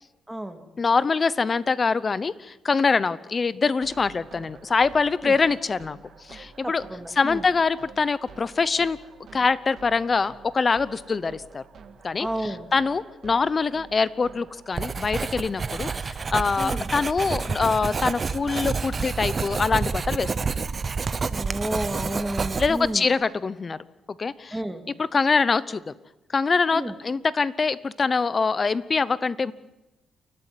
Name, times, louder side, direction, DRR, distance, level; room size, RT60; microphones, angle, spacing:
voice 1, 0.3-0.6 5.2-5.4 6.6-7.4 12.2-12.7 16.6-16.9 21.3-23.1 24.5-24.8 26.7-26.9, right 1 dB, 5° right, 6 dB, 2.3 m, -31 dB
voice 2, 0.8-6.0 6.2-6.8 7.2-9.0 9.3-11.6 12.0-20.5 22.6-23.8 24.1-24.6 25.0-25.9 26.3-29.5, left 4 dB, 30° left, 18 dB, 0.8 m, -24 dB
sound 1, 3.8-19.7, right 5 dB, 55° right, 2.1 m, -48 dB
Writing, 14.8-23.0, right 4 dB, 30° right, 0.9 m, -29 dB
29.0 x 12.0 x 9.9 m, 1.0 s
cardioid pair, 115°, 0 cm